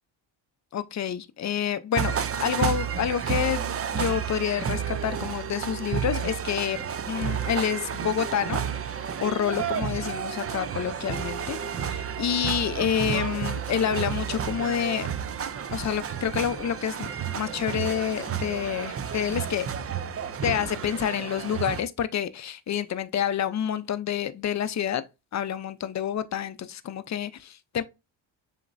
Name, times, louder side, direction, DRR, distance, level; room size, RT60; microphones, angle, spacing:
voice 1, 0.7-8.9 9.2-15.1 15.7-19.7 20.4-25.0 25.3-27.8, left 9 dB, 35° left, 0.6 m, -28 dB
sound 1, 1.9-21.8, right 8 dB, 30° right, 0.5 m, -31 dB
7.1 x 2.9 x 2.6 m
cardioid pair, 75°, 47 cm